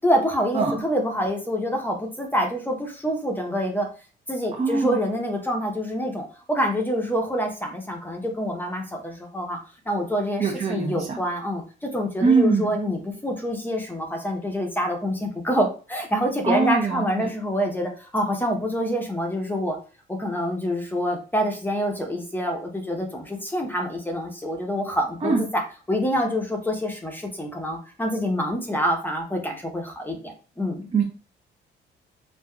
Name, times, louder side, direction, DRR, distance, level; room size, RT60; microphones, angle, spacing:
voice 1, 0.0-3.9 4.3-9.6 9.9-19.8 20.2-25.6 25.9-30.9, equal, 10° left, 2 dB, 0.7 m, -26 dB
voice 2, 4.5-5.0 10.4-11.2 12.2-12.7 16.4-17.3 25.2-25.5 30.9-31.0, right 4 dB, 30° right, -1 dB, 0.7 m, -22 dB
3.4 x 2.5 x 2.2 m, 0.36 s
cardioid pair, 90°, 20 cm